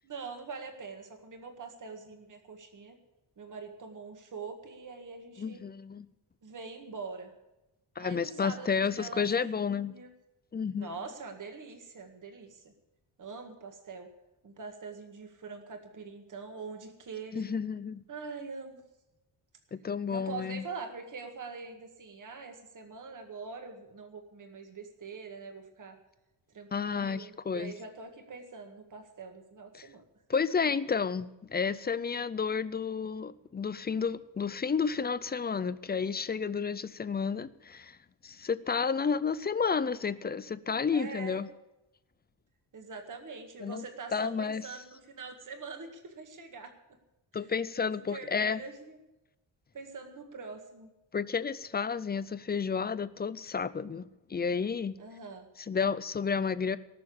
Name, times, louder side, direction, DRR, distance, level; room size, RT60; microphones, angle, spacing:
voice 1, 0.0-3.0 3.4-5.6 6.4-7.3 8.0-10.1 10.8-12.7 13.2-14.1 14.4-17.5 18.1-18.8 20.1-26.0 26.5-30.1 40.9-41.4 42.7-46.7 47.3-47.5 48.1-49.0 49.7-50.9 55.0-55.5, right 4 dB, 40° right, 1.9 m, -44 dB
voice 2, 5.4-6.1 8.0-10.0 10.5-10.9 17.3-18.0 19.7-20.6 26.7-27.7 29.7-29.9 30.3-38.0 38.2-41.5 43.6-43.8 44.1-44.6 47.3-48.6 51.1-55.0 55.7-56.8, left 6 dB, 20° left, 0.4 m, -31 dB
18.5 x 6.8 x 8.6 m
wide cardioid pair, 165°, 47 cm